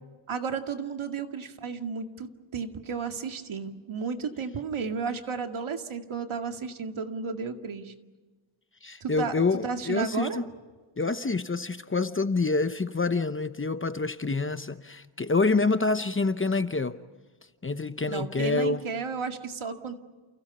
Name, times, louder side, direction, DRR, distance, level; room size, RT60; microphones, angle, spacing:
voice 1, 0.3-2.3 2.5-7.9 9.0-10.4 18.1-19.9, right 5 dB, 75° right, 2.3 m, -33 dB
voice 2, 8.8-10.4 11.0-17.0 17.6-18.8, left 3 dB, 25° left, 0.9 m, -27 dB
30.0 x 29.5 x 5.5 m
wide cardioid pair, 170°, 49 cm